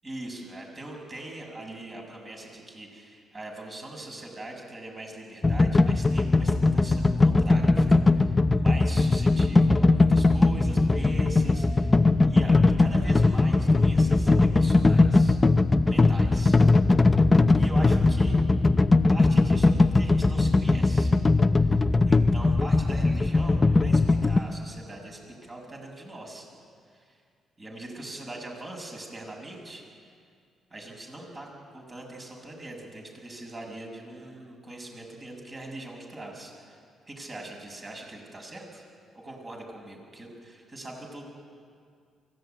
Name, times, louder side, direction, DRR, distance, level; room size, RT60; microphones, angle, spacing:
voice 1, 0.0-12.0 12.3-15.4 15.8-16.6 17.0-17.3 17.6-18.4 19.1-21.1 21.6-26.5 26.9-27.2 27.6-29.8 30.7-36.8 37.1-38.8 39.1-41.2, right 1 dB, 30° right, 1 dB, 6.5 m, -41 dB
sound 1, 5.4-24.4, left 3 dB, 20° left, 0.7 m, -20 dB
23.5 x 16.5 x 9.1 m, 2.2 s
cardioid pair, 90°, 0 cm